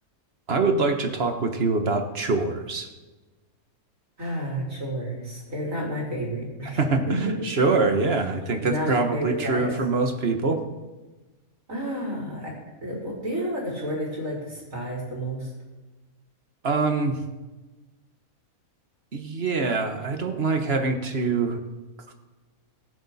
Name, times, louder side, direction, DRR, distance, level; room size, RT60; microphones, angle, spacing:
voice 1, 0.5-2.9 6.8-10.6 16.6-17.2 19.1-21.6, right 3 dB, 45° right, 6 dB, 1.4 m, -24 dB
voice 2, 4.2-6.8 7.1-7.7 8.6-9.8 11.7-12.5 12.8-15.5, equal, 65° right, -3 dB, 4.7 m, -31 dB
22.5 x 8.8 x 4.2 m, 1.2 s
omnidirectional pair, 1.5 m